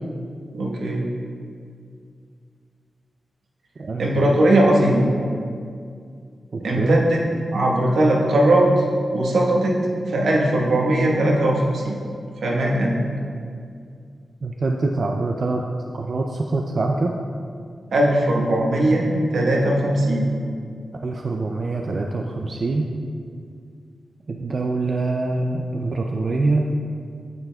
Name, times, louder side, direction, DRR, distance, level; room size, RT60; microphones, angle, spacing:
voice 1, 0.5-1.0 4.0-5.1 6.6-7.2 7.5-8.8 9.1-9.8 10.1-12.0 12.4-13.0 17.9-20.3, right 1 dB, 85° right, -2 dB, 1.2 m, -19 dB
voice 2, 3.8-4.4 6.5-7.0 14.4-15.6 15.9-17.1 21.0-22.9 24.3-26.7, right 3 dB, 50° right, 1 dB, 0.4 m, -24 dB
9.5 x 6.8 x 2.3 m, 2.3 s
wide cardioid pair, 125°, 0 cm